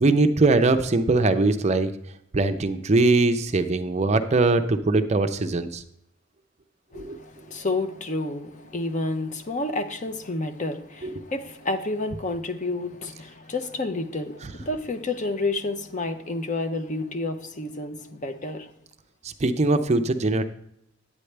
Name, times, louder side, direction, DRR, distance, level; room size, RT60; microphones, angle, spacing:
voice 1, 0.0-1.9 2.3-5.8 6.9-7.2 11.0-11.1 19.4-20.4, right 2 dB, 35° right, 9 dB, 0.5 m, -21 dB
voice 2, 6.9-18.7, left 2 dB, 35° left, 9 dB, 0.7 m, -30 dB
9.7 x 8.5 x 3.3 m, 0.76 s
head